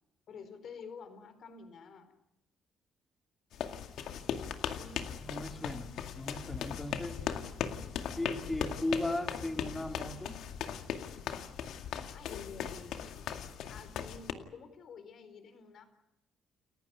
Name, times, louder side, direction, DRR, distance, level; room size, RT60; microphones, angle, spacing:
voice 1, 0.3-2.1 4.8-5.2 12.1-13.4 13.7-15.8, left 5 dB, 65° left, 10 dB, 4.1 m, -50 dB
sound 1, 3.5-14.3, left 8 dB, 80° left, 2.2 m, -38 dB
voice 2, 5.2-5.9 6.1-7.3 8.2-10.4, left 2 dB, 15° left, 4 dB, 3.7 m, -36 dB
29.5 x 15.5 x 9.5 m, 0.89 s
cardioid pair, 90°, 0 cm